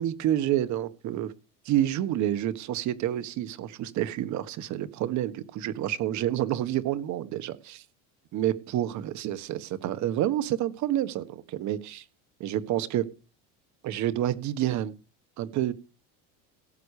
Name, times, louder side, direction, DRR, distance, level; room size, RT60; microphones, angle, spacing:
voice 1, 0.0-1.3 1.6-7.8 8.3-12.0 12.4-13.0 13.8-14.9 15.4-15.7, right 12 dB, 50° right, 14 dB, 1.5 m, -28 dB
17.5 x 8.0 x 4.9 m, 0.33 s
cardioid pair, 135°, 36 cm